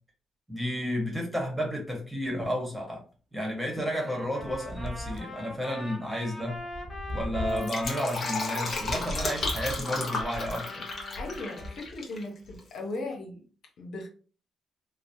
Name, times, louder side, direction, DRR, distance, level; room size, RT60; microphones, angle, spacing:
voice 1, 0.5-3.0 3.3-6.6 7.1-10.9, equal, 5° right, 1.2 m, -32 dB
Trumpet, 3.8-9.4 9.9-11.8, left 1 dB, 10° left, 1.0 m, -43 dB
sound 1, 4.4-5.5 6.4-7.9 8.6-10.0 10.8-12.0, equal, 65° right, 0.5 m, -38 dB
Fill (with liquid), 7.4-12.2 12.5-12.6, left 3 dB, 50° left, 1.0 m, -33 dB
voice 2, 11.2-13.4 13.8-14.1, left 2 dB, 75° left, 0.8 m, -37 dB
3.1 x 2.0 x 2.7 m
cardioid pair, 75°, 0 cm